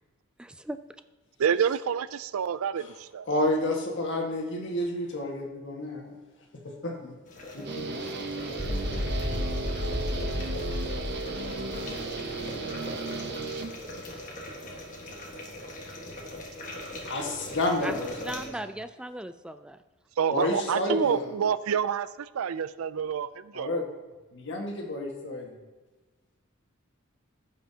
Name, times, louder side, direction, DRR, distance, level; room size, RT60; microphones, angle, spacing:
voice 1, 0.4-0.8 7.6-7.7 17.8-19.8, right 1 dB, 5° right, 10 dB, 0.3 m, -38 dB
voice 2, 1.4-3.3 20.2-23.9, right 7 dB, 90° right, 16 dB, 0.4 m, -28 dB
voice 3, 3.3-6.1 6.6-7.1 7.5-7.8 17.0-18.5 20.3-21.3 23.5-23.8 24.3-25.6, left 1 dB, 60° left, 1 dB, 1.6 m, -30 dB
sound 1, 7.3-18.5, left 1 dB, 40° left, 1.5 m, -41 dB
Guitar, 7.6-14.2, right 3 dB, 55° right, 0.8 m, -35 dB
sound 2, 8.6-12.8, left 1 dB, 25° right, 0.9 m, -33 dB
15.0 x 5.7 x 2.8 m, 1.2 s
head